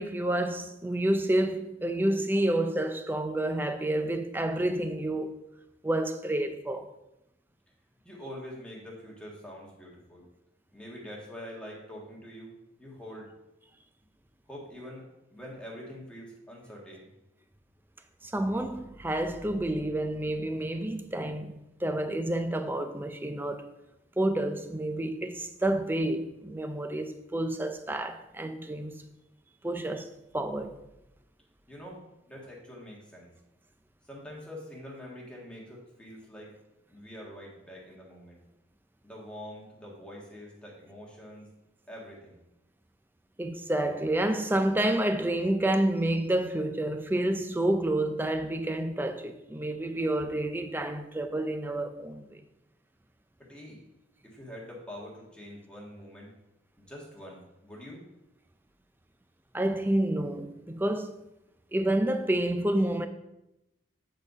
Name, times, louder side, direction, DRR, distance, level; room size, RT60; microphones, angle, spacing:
voice 1, 0.0-5.4 5.8-6.9 18.2-23.7 24.2-29.0 29.6-30.1 30.3-30.8 43.4-52.4 59.5-61.1 61.7-63.1, right 1 dB, 10° right, 0.4 m, -29 dB
voice 2, 8.0-10.2 10.7-12.5 12.8-13.3 14.5-15.0 15.3-17.1 31.7-32.0 32.3-33.3 34.0-36.5 36.9-38.4 39.0-41.5 41.9-42.4 53.4-53.8 54.2-56.3 56.8-58.0, equal, 5° left, 1.6 m, -45 dB
8.8 x 4.0 x 4.8 m
head